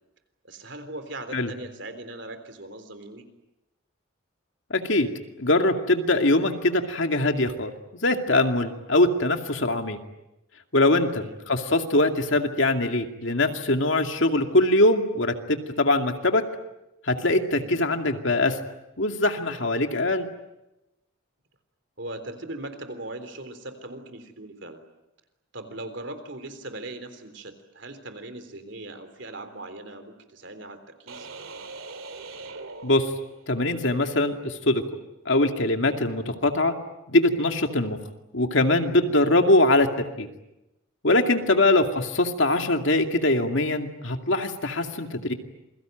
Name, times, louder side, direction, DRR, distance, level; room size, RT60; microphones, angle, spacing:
voice 1, 0.4-3.3 11.1-11.5 17.5-17.9 22.0-24.8 25.5-31.3 41.4-41.6, right 2 dB, 55° right, 9 dB, 3.6 m, -39 dB
voice 2, 4.7-5.1 5.4-10.0 10.7-16.4 17.0-18.6 19.0-20.3 32.8-33.1 33.5-34.8 35.3-36.7 37.1-38.0 38.3-40.3 41.0-45.3, left 2 dB, 65° left, 5 dB, 2.4 m, -22 dB
sound 1, 31.1-33.7, right 3 dB, 80° right, 2.6 m, -41 dB
28.0 x 22.5 x 9.1 m, 0.94 s
head